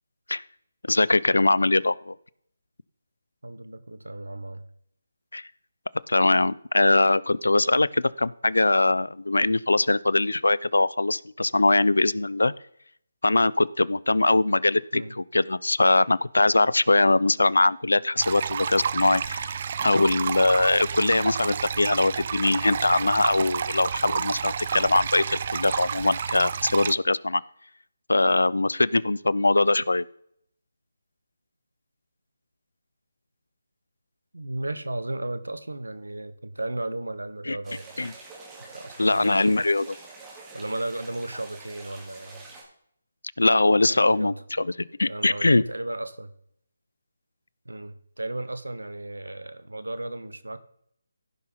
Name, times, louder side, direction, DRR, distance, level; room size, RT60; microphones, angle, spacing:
voice 1, 0.9-2.2 5.3-5.4 6.1-12.5 13.2-19.6 19.8-27.4 28.1-30.0 37.5-37.6 38.0-38.1 39.0-40.0 43.4-45.6, left 2 dB, 80° left, 0.4 m, -22 dB
voice 2, 3.4-4.6 14.9-15.2 34.3-38.1 38.7-39.6 40.5-42.4 43.9-44.4 45.0-46.3 47.6-50.6, right 2 dB, 85° right, 0.9 m, -35 dB
sound 1, 18.2-26.9, right 7 dB, 40° right, 0.4 m, -30 dB
sound 2, 37.6-42.6, right 3 dB, 10° right, 2.2 m, -46 dB
15.5 x 5.8 x 3.9 m
figure-of-eight pair, 155°, 0 cm